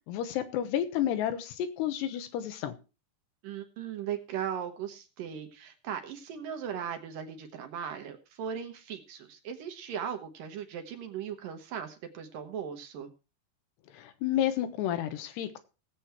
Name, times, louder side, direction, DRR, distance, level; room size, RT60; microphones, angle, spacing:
voice 1, 0.1-2.7 13.9-15.6, left 11 dB, 85° left, 9 dB, 3.3 m, -31 dB
voice 2, 3.4-13.1, right 8 dB, 65° right, 6 dB, 2.7 m, -38 dB
18.5 x 7.8 x 4.5 m, 0.32 s
omnidirectional pair, 4.7 m